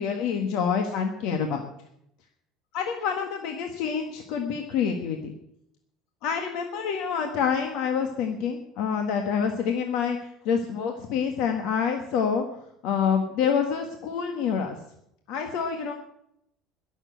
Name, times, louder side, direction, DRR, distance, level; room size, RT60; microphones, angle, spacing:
voice 1, 0.0-1.6 2.7-5.3 6.2-12.4 12.8-14.8 15.3-15.9, left 7 dB, 70° left, 5 dB, 1.6 m, -27 dB
21.0 x 7.3 x 8.2 m, 0.77 s
cardioid pair, 130°, 0 cm